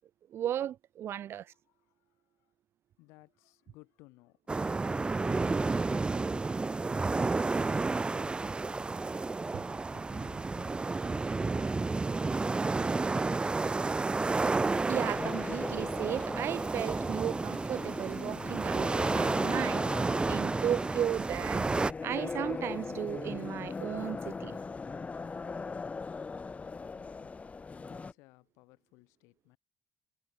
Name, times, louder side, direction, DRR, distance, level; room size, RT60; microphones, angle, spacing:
voice 1, 0.3-1.5 14.9-21.7 22.0-24.6, right 11 dB, 60° right, 1.2 m, -35 dB
voice 2, 1.2-2.5 3.0-6.5 27.0-27.5 27.8-29.6, left 24 dB, 85° left, 4.9 m, -60 dB
sound 1, 4.5-21.9, right 3 dB, 20° right, 0.5 m, -31 dB
sound 2, 14.9-28.1, left 4 dB, 30° left, 1.5 m, -40 dB
supercardioid pair, 75°, 5 cm